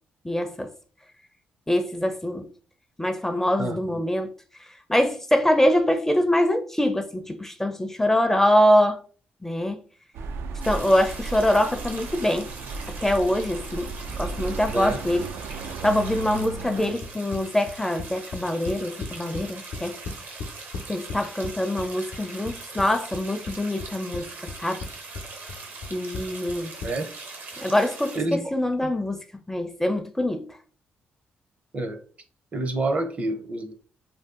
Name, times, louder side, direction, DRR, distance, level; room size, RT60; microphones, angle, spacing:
voice 1, 0.2-0.7 1.7-2.5 3.0-4.3 4.9-9.0 9.4-9.8 10.6-12.5 12.9-15.3 15.8-20.0 20.9-24.8 25.9-26.8 27.6-29.2 29.5-30.5, left 1 dB, 10° left, 0.4 m, -24 dB
voice 2, 3.6-4.0 14.6-15.0 26.8-27.1 28.2-28.4 28.8-28.9 31.7-32.0 32.5-33.7, right 2 dB, 40° right, 0.6 m, -28 dB
sound 1, 10.1-16.9, right 3 dB, 80° right, 0.4 m, -35 dB
sound 2, 10.6-28.2, right 3 dB, 65° right, 0.8 m, -41 dB
sound 3, 17.0-19.4 19.7-21.5 21.8-22.9 23.1-24.2 24.5-24.9 25.1-26.9, left 4 dB, 80° left, 0.6 m, -35 dB
2.6 x 2.3 x 3.6 m
cardioid pair, 75°, 4 cm